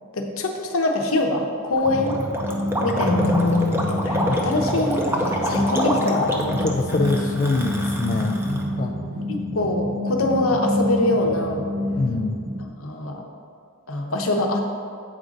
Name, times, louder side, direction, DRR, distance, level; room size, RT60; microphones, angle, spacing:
voice 1, 0.1-2.2 2.8-3.5 3.9-6.2 9.3-11.6 12.8-13.2 13.9-14.6, left 2 dB, 80° left, 2 dB, 0.9 m, -24 dB
Gurgling, 1.7-8.6, equal, 10° right, 0.6 m, -27 dB
sound 1, 1.8-12.7, equal, 80° right, 0.9 m, -28 dB
voice 2, 3.0-4.4 5.7-8.9 12.0-12.4, left 3 dB, 35° left, 2 dB, 0.3 m, -24 dB
8.1 x 3.8 x 5.2 m, 2.3 s
head